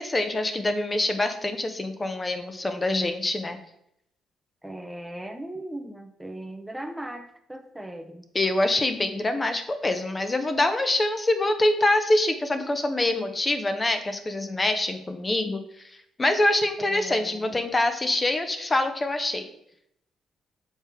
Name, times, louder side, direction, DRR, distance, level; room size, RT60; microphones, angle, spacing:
voice 1, 0.0-3.6 8.3-15.6 16.2-19.4, left 2 dB, 25° left, 8 dB, 0.7 m, -25 dB
voice 2, 4.6-8.3 16.8-17.6, right 1 dB, 10° right, 6 dB, 0.7 m, -38 dB
6.6 x 3.3 x 4.5 m, 0.75 s
supercardioid pair, 60°, 0 cm